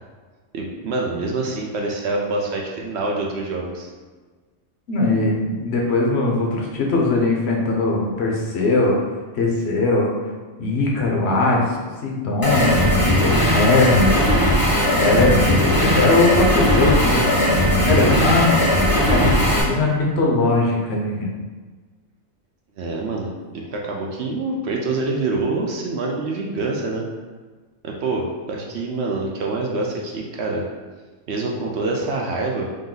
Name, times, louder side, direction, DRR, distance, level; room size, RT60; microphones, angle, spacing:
voice 1, 0.5-3.9 22.8-27.1 27.8-30.6 31.3-32.7, right 3 dB, 65° right, -1 dB, 0.7 m, -26 dB
voice 2, 4.9-9.0 9.3-10.1 10.6-12.8 13.2-14.1 14.9-17.5 17.9-18.6 19.1-21.3, left 2 dB, 55° left, -2 dB, 0.9 m, -20 dB
sound 1, 12.4-19.6, left 1 dB, 20° left, 0.8 m, -18 dB
3.6 x 2.6 x 3.8 m, 1.4 s
omnidirectional pair, 1.4 m